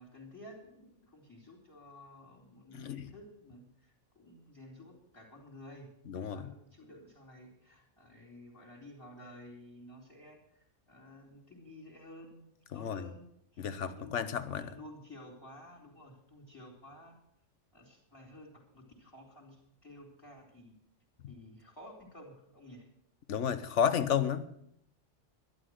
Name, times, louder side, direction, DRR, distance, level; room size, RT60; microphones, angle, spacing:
voice 1, 0.0-13.3 13.5-14.2 14.6-17.2 17.7-20.7 21.3-22.9, left 1 dB, 20° left, 3.6 m, -53 dB
voice 2, 2.7-3.1 6.1-6.5 12.7-13.0 13.6-14.7 23.3-24.4, left 8 dB, 80° left, 1.3 m, -32 dB
12.0 x 11.5 x 6.4 m
omnidirectional pair, 1.2 m